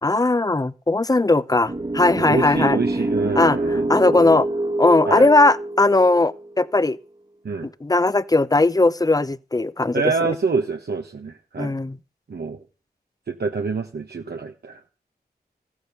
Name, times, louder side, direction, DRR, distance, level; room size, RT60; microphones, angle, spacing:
voice 1, 0.0-2.8 3.4-3.6 3.9-4.5 4.8-7.0 7.6-10.3 11.6-12.0, left 2 dB, 20° left, 0.8 m, -18 dB
sound 1, 1.7-6.8, right 2 dB, 30° right, 1.5 m, -26 dB
voice 2, 2.2-4.3 5.1-5.3 7.4-7.7 9.9-11.7 12.3-12.6 13.3-14.8, right 4 dB, 75° right, 1.3 m, -26 dB
15.0 x 9.8 x 7.0 m
wide cardioid pair, 90°, 17 cm